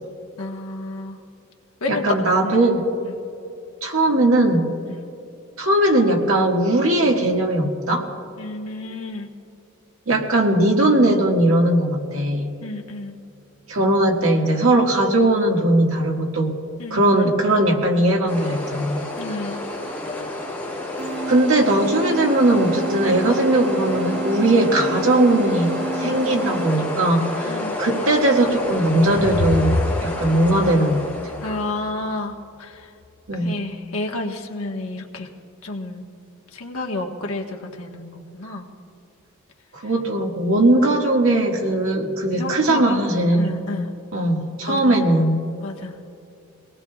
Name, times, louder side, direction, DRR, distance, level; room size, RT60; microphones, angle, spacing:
voice 1, 0.4-1.2 1.8-2.1 2.4-2.6 3.0-3.1 4.9-5.0 8.4-9.3 12.6-13.2 16.8-17.1 19.2-19.6 26.0-26.6 27.5-27.8 31.4-32.9 33.4-35.3 35.6-36.0 36.5-38.7 42.3-43.0 43.3-43.9 44.7-45.1 45.6-46.0, left 2 dB, 85° left, 2 dB, 1.4 m, -31 dB
voice 2, 1.9-2.9 3.8-4.7 5.6-8.1 10.1-12.5 13.7-16.5 16.9-19.0 21.3-29.7 30.0-31.0 33.3-33.6 39.7-43.6 44.1-45.4, right 1 dB, 75° right, 0 dB, 1.8 m, -19 dB
sound 1, 18.3-31.7, left 2 dB, 10° left, 3.4 m, -30 dB
sound 2, 21.0-27.0, right 3 dB, 50° right, 0.9 m, -30 dB
sound 3, 28.4-31.9, left 2 dB, 55° left, 0.7 m, -27 dB
24.0 x 18.5 x 2.3 m, 2.7 s
head